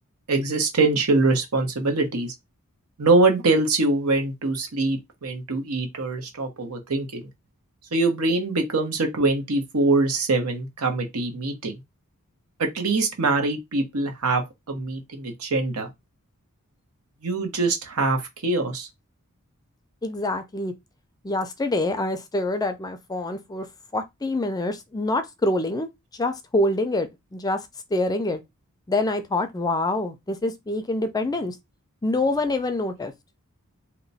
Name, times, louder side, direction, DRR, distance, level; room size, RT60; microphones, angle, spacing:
voice 1, 0.3-2.3 3.0-7.2 7.9-11.8 12.6-15.9 17.2-18.9, right 3 dB, 80° right, 0.9 m, -23 dB
voice 2, 20.0-20.7 21.2-23.7 23.9-25.9 26.2-27.6 27.9-28.4 28.9-31.5 32.0-33.1, left 2 dB, 15° left, 0.4 m, -26 dB
2.9 x 2.1 x 4.0 m
head